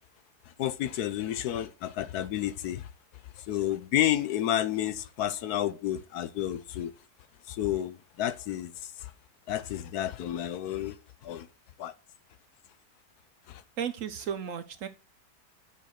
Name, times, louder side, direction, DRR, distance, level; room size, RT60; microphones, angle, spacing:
voice 1, 0.6-2.9 3.4-6.9 7.5-9.1 9.5-11.0 11.2-11.5 11.8-11.9 13.5-13.6, left 12 dB, 75° left, 1.1 m, -31 dB
voice 2, 13.8-14.9, right 8 dB, 60° right, 1.0 m, -34 dB
7.9 x 6.5 x 6.4 m
omnidirectional pair, 1.8 m